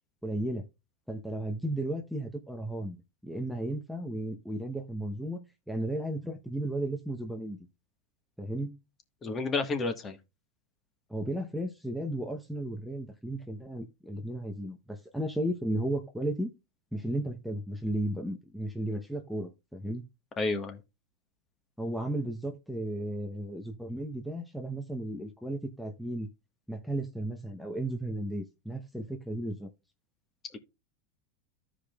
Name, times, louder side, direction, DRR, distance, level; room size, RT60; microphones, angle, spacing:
voice 1, 0.2-0.6 1.1-3.0 3.2-7.6 8.4-8.8 11.1-16.5 16.9-20.0 21.8-26.3 26.7-29.7, right 1 dB, ahead, 0.9 m, -34 dB
voice 2, 9.2-10.2 20.4-20.8, left 3 dB, 25° left, 1.4 m, -30 dB
14.0 x 5.1 x 2.4 m
hypercardioid pair, 115°, 0 cm